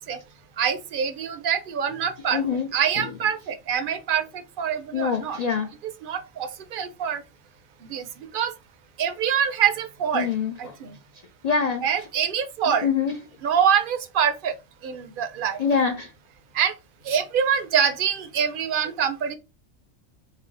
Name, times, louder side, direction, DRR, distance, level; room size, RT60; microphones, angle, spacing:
voice 1, 0.6-2.4 2.7-4.2 4.6-5.4 5.8-7.2 7.8-8.5 9.0-10.3 10.6-10.9 11.8-12.9 13.4-14.5 14.8-15.6 16.5-16.7 17.0-19.4, right 8 dB, 60° right, 0.6 m, -25 dB
voice 2, 2.3-2.7 4.9-5.7 10.1-10.5 11.4-11.8 12.8-13.2 15.6-16.1, left 6 dB, 75° left, 0.3 m, -24 dB
3.4 x 2.1 x 3.7 m
omnidirectional pair, 1.2 m